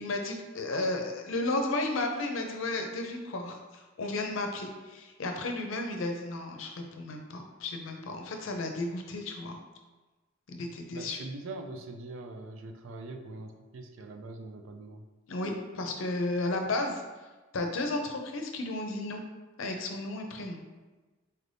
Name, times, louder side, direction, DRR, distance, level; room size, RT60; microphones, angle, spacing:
voice 1, 0.0-9.6 10.5-11.2 15.3-17.0 17.5-19.2 19.6-20.6, left 2 dB, 70° left, 3 dB, 0.5 m, -33 dB
voice 2, 10.9-15.0, right 2 dB, 70° right, 5 dB, 0.4 m, -42 dB
4.1 x 3.3 x 2.6 m, 1.2 s
head